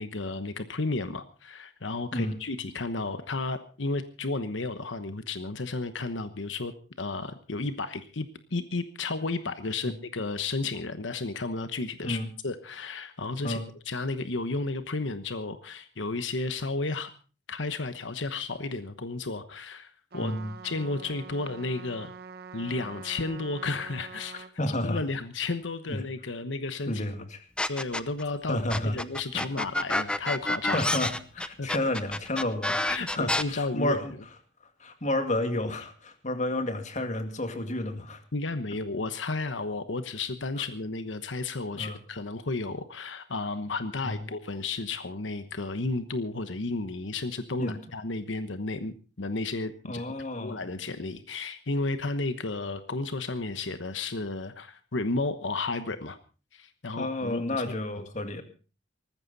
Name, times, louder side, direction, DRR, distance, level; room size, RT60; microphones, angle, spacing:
voice 1, 0.0-6.7 7.0-13.6 13.9-17.1 17.5-20.3 20.6-22.1 22.5-24.4 24.8-27.0 27.7-30.9 31.6-31.7 32.9-34.0 38.3-50.0 50.4-56.2 56.5-57.6 58.0-58.1, left 3 dB, 85° left, 11 dB, 1.1 m, -33 dB
Trumpet, 20.1-24.5, right 5 dB, 55° right, 1.3 m, -45 dB
voice 2, 20.2-20.5 24.6-25.0 25.9-26.0 26.9-27.4 28.5-29.0 29.3-29.4 30.7-34.1 34.8-38.2 41.7-42.0 44.0-44.2 47.6-47.8 49.9-50.6 57.0-58.4, left 1 dB, 40° left, 7 dB, 2.2 m, -31 dB
sound 1, 27.6-28.2 28.7-33.4, left 1 dB, 5° left, 0.7 m, -28 dB
19.0 x 15.0 x 4.1 m, 0.36 s
head